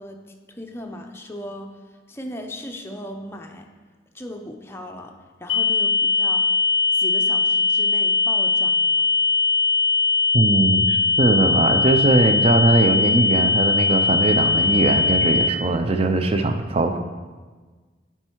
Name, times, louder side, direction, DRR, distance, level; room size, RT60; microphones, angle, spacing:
voice 1, 0.0-3.7 4.1-6.5 6.9-9.1, left 1 dB, 15° left, 3 dB, 0.5 m, -37 dB
sound 1, 5.5-15.5, left 5 dB, 80° left, 0.4 m, -20 dB
voice 2, 10.3-17.0, right 2 dB, 35° right, 7 dB, 0.5 m, -20 dB
7.7 x 4.6 x 4.5 m, 1.4 s
head